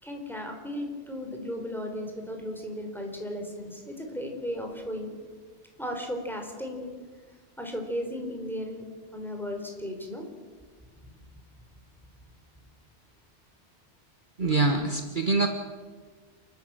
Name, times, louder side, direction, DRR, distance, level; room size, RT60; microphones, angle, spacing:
voice 1, 0.0-5.1 5.8-6.9 7.6-8.9 9.1-10.3, equal, ahead, 2 dB, 4.3 m, -35 dB
voice 2, 14.4-15.5, right 3 dB, 45° right, 5 dB, 1.5 m, -24 dB
28.0 x 13.0 x 8.9 m, 1.5 s
omnidirectional pair, 1.2 m